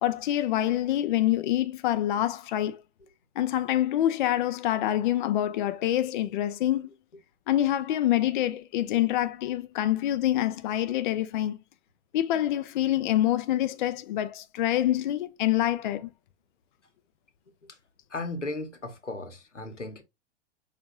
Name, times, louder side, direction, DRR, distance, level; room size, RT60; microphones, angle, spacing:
voice 1, 0.0-2.8 3.4-6.9 7.5-11.6 12.1-16.1, left 13 dB, 45° left, 0.5 m, -26 dB
voice 2, 18.1-20.0, left 2 dB, 85° left, 1.0 m, -36 dB
6.9 x 2.5 x 2.5 m
figure-of-eight pair, 100°, 35 cm